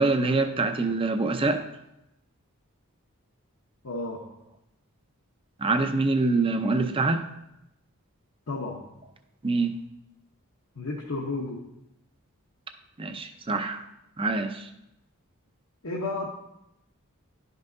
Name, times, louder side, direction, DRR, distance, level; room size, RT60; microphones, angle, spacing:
voice 1, 0.0-1.6 5.6-7.2 9.4-9.7 13.0-13.8 14.2-14.7, right 3 dB, 25° right, 7 dB, 0.5 m, -25 dB
voice 2, 3.8-4.2 8.5-8.8 10.7-11.6 15.8-16.3, left 3 dB, 70° left, -3 dB, 1.0 m, -32 dB
11.0 x 5.4 x 2.6 m, 0.85 s
head